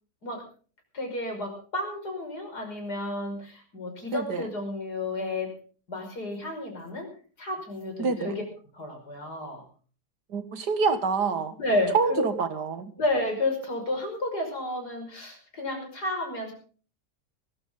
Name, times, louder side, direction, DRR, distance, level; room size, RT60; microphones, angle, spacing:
voice 1, 0.9-5.5 5.9-7.1 7.4-8.4 8.7-9.6 11.6-12.3 13.0-16.5, left 1 dB, 70° left, 3 dB, 6.1 m, -31 dB
voice 2, 4.1-4.4 8.0-8.4 10.3-11.6 11.9-12.9, right 5 dB, 75° right, 10 dB, 2.2 m, -26 dB
19.0 x 15.5 x 3.8 m, 0.40 s
omnidirectional pair, 1.8 m